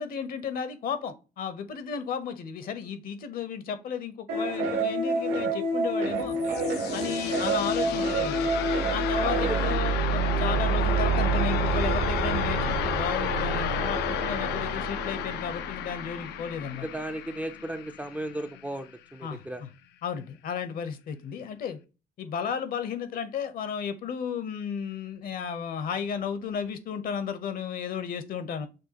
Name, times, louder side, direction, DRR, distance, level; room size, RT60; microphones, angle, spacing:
voice 1, 0.0-6.4 6.9-8.5 8.9-16.9 19.2-19.7 20.0-21.8 22.2-28.7, left 7 dB, 55° left, 12 dB, 0.8 m, -34 dB
sound 1, 4.3-9.7, right 2 dB, 80° right, 1.7 m, -28 dB
sound 2, 6.2-18.8, left 12 dB, 80° left, 0.4 m, -33 dB
sound 3, 7.5-16.4, right 6 dB, 50° right, 0.6 m, -29 dB
voice 2, 16.8-19.6, right 1 dB, 10° right, 7 dB, 0.4 m, -35 dB
6.2 x 2.3 x 2.8 m, 0.30 s
cardioid pair, 110°, 17 cm